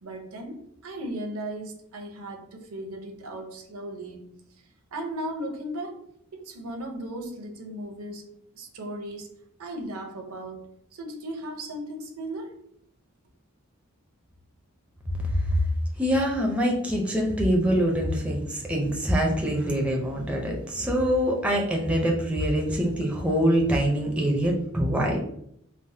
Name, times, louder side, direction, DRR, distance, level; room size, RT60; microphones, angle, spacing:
voice 1, 0.0-4.3 4.9-6.1 6.3-8.3 8.5-12.6, right 1 dB, 75° right, 3 dB, 0.6 m, -36 dB
voice 2, 16.0-25.2, equal, 5° right, -1 dB, 0.4 m, -24 dB
3.3 x 2.0 x 2.6 m, 0.70 s
head